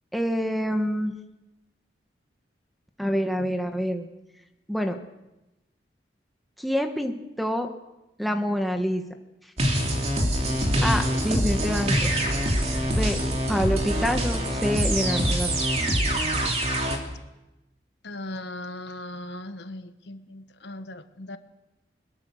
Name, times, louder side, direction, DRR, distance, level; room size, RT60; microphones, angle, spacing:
voice 1, 0.1-1.1 3.0-4.1 4.7-5.0 6.6-7.7 8.2-9.0 10.8-12.1 13.0-13.2 13.5-15.8, equal, ahead, 4 dB, 1.3 m, -27 dB
sound 1, 9.6-17.0, equal, 35° right, 2.9 m, -24 dB
voice 2, 18.0-21.4, left 1 dB, 75° left, 10 dB, 1.2 m, -38 dB
21.5 x 21.5 x 6.4 m, 0.98 s
head